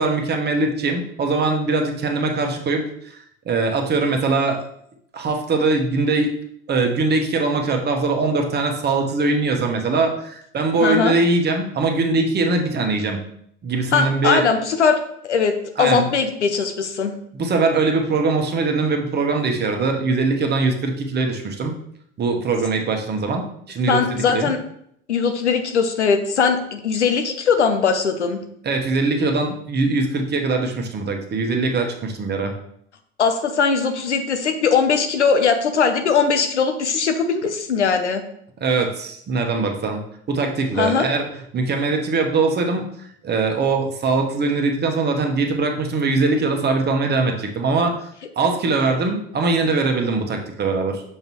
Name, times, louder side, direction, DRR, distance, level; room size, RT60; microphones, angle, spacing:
voice 1, 0.0-4.6 5.1-6.3 6.7-13.2 13.6-14.4 15.8-16.0 17.3-21.7 22.2-24.0 24.3-24.5 28.6-32.5 38.6-40.0 40.3-41.3 41.5-42.8 43.2-48.1 48.4-51.0, right 3 dB, 30° right, 3 dB, 1.2 m, -21 dB
voice 2, 10.8-11.2 13.9-15.0 15.2-15.5 15.8-17.1 23.9-24.6 25.1-28.4 33.2-38.2 40.8-41.1, left 5 dB, 90° left, 7 dB, 0.8 m, -20 dB
6.7 x 5.3 x 3.0 m, 0.70 s
hypercardioid pair, 75°, 34 cm